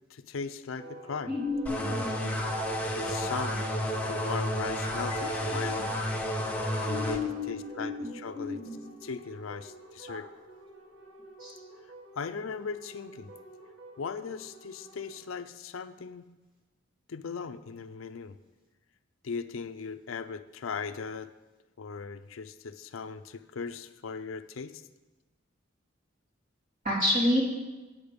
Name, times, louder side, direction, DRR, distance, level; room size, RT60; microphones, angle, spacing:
voice 1, 0.1-1.3 3.0-5.9 6.8-8.6 9.0-10.3 12.2-13.3 14.0-16.3 17.1-18.4 19.2-21.3 21.8-24.8, left 5 dB, 80° left, 11 dB, 0.5 m, -38 dB
sound 1, 0.8-15.2, right 1 dB, 65° right, 2.1 m, -48 dB
voice 2, 1.3-2.4 3.5-3.6 5.1-5.6 6.9-8.8 10.1-10.2 11.4-11.5 26.8-27.4, left 2 dB, 40° right, -5 dB, 3.1 m, -31 dB
sound 2, 1.7-7.2, equal, 5° left, 0.9 m, -31 dB
8.8 x 8.5 x 5.1 m, 1.2 s
head